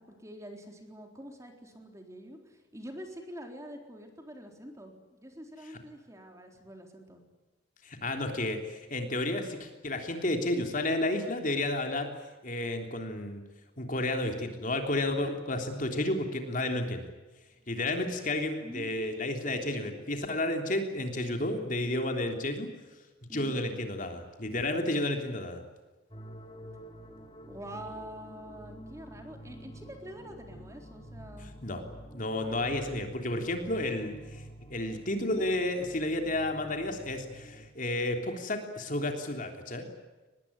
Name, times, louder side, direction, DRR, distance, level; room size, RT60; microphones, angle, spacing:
voice 1, 0.0-7.2 18.6-19.2 23.3-23.6 27.5-31.5 35.1-35.5, equal, 15° right, 3 dB, 3.9 m, -46 dB
voice 2, 7.8-12.1 12.4-13.4 13.8-17.1 17.7-22.7 23.3-25.6 31.6-31.8 32.1-34.4 34.7-39.9, left 1 dB, 40° left, 4 dB, 3.3 m, -31 dB
sound 1, 26.1-37.7, right 1 dB, 25° left, 3.0 m, -48 dB
24.0 x 20.5 x 9.8 m, 1.2 s
head